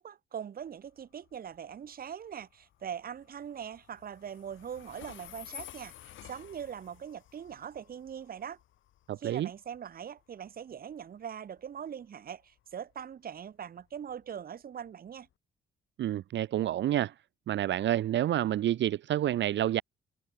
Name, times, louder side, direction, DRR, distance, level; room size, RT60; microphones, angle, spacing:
voice 1, 0.0-8.6 9.2-15.3, right 8 dB, 50° right, 1.2 m, -42 dB
Train, 0.6-15.3, left 13 dB, 80° left, 3.1 m, -54 dB
voice 2, 9.1-9.5 16.0-17.1 17.5-19.8, right 12 dB, 65° right, 0.8 m, -28 dB
cardioid pair, 90°, 20 cm